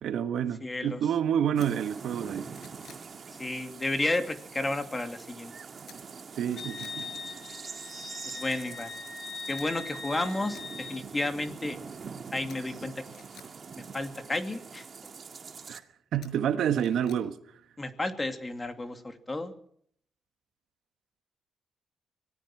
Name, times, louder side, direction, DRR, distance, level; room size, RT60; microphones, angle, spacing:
voice 1, 0.0-2.4 6.4-7.1 15.7-15.8 16.1-17.4, right 9 dB, 75° right, 1.5 m, -28 dB
voice 2, 0.6-1.0 3.4-5.5 8.2-8.9 9.5-11.8 12.3-13.0 13.8-14.8 17.8-19.5, left 2 dB, 20° left, 2.6 m, -32 dB
sound 1, 1.5-15.8, right 5 dB, 45° right, 2.0 m, -44 dB
sound 2, 1.6-1.7 2.2-3.1 5.9-6.2 6.5-7.0 9.6-9.7 10.2-10.7 12.5-13.5 16.2-17.2 17.6-17.7, left 7 dB, 75° left, 5.7 m, -53 dB
Wind instrument woodwind instrument, 6.6-11.0, left 4 dB, 55° left, 5.8 m, -41 dB
24.5 x 18.0 x 6.0 m
cardioid pair, 85°, 0 cm